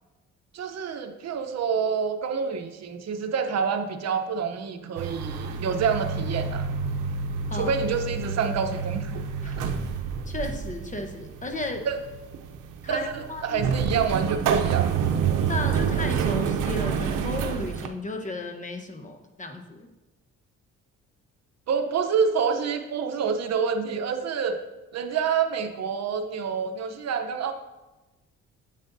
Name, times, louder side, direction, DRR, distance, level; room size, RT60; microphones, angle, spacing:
voice 1, 0.5-6.7 7.5-9.7 11.8-12.0 12.9-14.9 21.7-24.6 24.9-27.5, right 6 dB, 60° right, 7 dB, 0.9 m, -27 dB
sound 1, 5.0-17.9, right 6 dB, 85° right, 0.7 m, -28 dB
voice 2, 10.3-11.9 12.8-13.6 15.5-19.9, left 2 dB, 25° left, 5 dB, 1.1 m, -34 dB
9.7 x 7.5 x 2.7 m, 1.1 s
cardioid pair, 90°, 30 cm